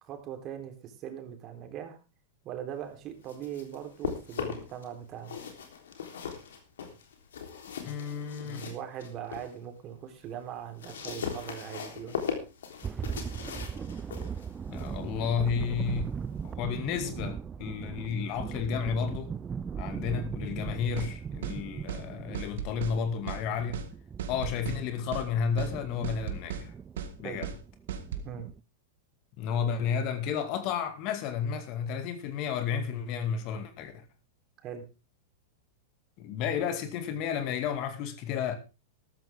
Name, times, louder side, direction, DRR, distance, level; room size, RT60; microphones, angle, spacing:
voice 1, 0.0-2.0 2.4-5.4 8.4-12.2 27.2-27.4 28.2-28.5 34.6-34.8, right 9 dB, 40° right, 3.5 m, -40 dB
sound 1, 3.0-4.8 5.2-9.5 9.9-16.5, left 7 dB, 80° left, 3.5 m, -39 dB
voice 2, 7.8-8.6 14.7-16.2 16.4-19.3 19.8-23.8 24.3-26.7 27.2-27.5 29.4-33.9 36.2-38.6, left 7 dB, 45° left, 2.3 m, -32 dB
sound 2, 12.8-28.6, right 7 dB, 20° right, 0.5 m, -39 dB
sound 3, 21.0-21.1 21.4-21.6 21.9-22.0 22.3-23.0 23.3-23.4 23.7-23.9 24.2-24.8 25.1-25.3 25.6-25.7 26.0-26.7 27.0-27.1 27.4-27.6 27.9-28.3, right 8 dB, 70° right, 1.9 m, -36 dB
13.5 x 13.5 x 3.6 m
hypercardioid pair, 105°, 0 cm